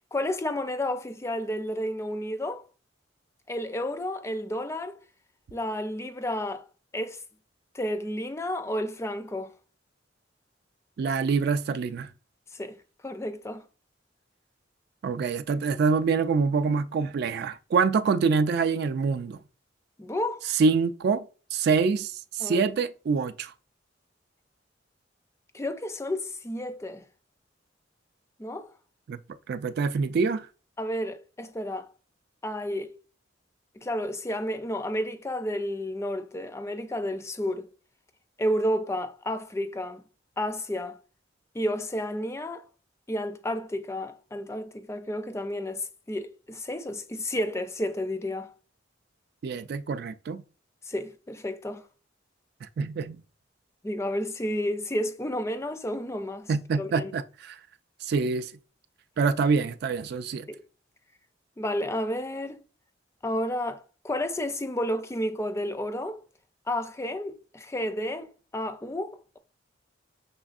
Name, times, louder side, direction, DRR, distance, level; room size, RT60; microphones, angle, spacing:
voice 1, 0.1-2.6 3.5-4.9 5.5-6.6 6.9-7.2 7.7-9.5 12.5-12.8 13.0-13.6 20.0-20.4 22.4-22.7 25.5-27.0 28.4-28.7 30.8-31.9 32.4-33.0 33.8-37.7 38.4-40.0 40.4-41.0 41.5-42.6 43.1-48.5 50.9-51.8 53.8-56.5 56.8-57.1 60.5-60.6 61.6-62.6 63.2-66.2 66.7-69.4, left 1 dB, 15° left, 0.4 m, -31 dB
voice 2, 11.0-12.1 15.0-19.4 20.4-21.3 21.5-23.5 29.1-29.2 29.5-30.5 49.4-50.4 52.6-53.2 56.5-57.6 58.0-58.5 59.2-60.5, right 5 dB, 55° right, 0.3 m, -26 dB
6.1 x 3.4 x 2.4 m
head